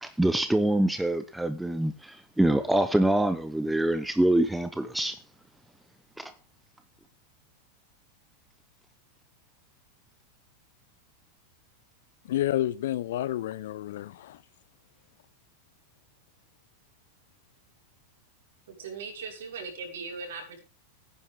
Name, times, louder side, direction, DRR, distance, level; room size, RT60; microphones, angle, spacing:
voice 1, 0.0-5.2 6.2-6.3, right 1 dB, 5° right, 0.9 m, -25 dB
voice 2, 12.3-14.4, left 13 dB, 55° left, 0.8 m, -30 dB
voice 3, 18.7-20.6, right 4 dB, 60° right, 6.2 m, -39 dB
17.5 x 9.9 x 3.7 m
figure-of-eight pair, 90°, 0 cm